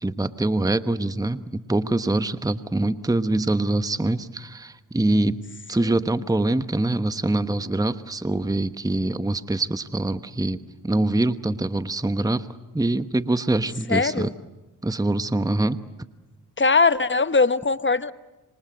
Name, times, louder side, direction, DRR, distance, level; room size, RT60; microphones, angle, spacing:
voice 1, 0.0-5.4 5.7-10.6 10.8-12.5 12.7-14.3 14.8-15.8, right 2 dB, 10° right, 12 dB, 1.1 m, -24 dB
voice 2, 13.9-14.3 16.6-18.1, left 4 dB, 25° left, 13 dB, 1.1 m, -20 dB
26.0 x 25.0 x 8.0 m, 1.1 s
supercardioid pair, 50°, 44 cm